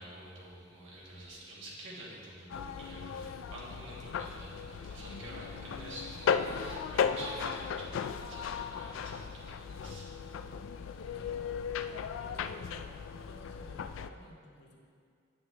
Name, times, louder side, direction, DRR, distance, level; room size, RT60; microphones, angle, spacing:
voice 1, 0.0-11.2, right 1 dB, 75° right, -5 dB, 1.8 m, -48 dB
sound 1, 2.5-14.1, left 6 dB, 85° left, 0.3 m, -36 dB
voice 2, 10.8-14.8, left 1 dB, 60° left, -1 dB, 1.1 m, -54 dB
8.7 x 6.5 x 3.3 m, 2.3 s
head